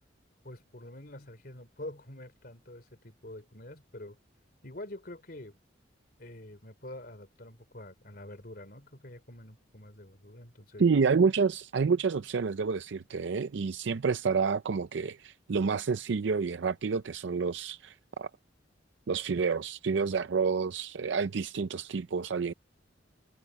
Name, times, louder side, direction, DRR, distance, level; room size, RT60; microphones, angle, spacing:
voice 1, 0.4-4.2 4.6-5.6 6.2-10.8, left 1 dB, 50° left, 3.7 m, -46 dB
voice 2, 10.8-18.3 19.1-22.5, right 5 dB, 70° right, 0.5 m, -29 dB
head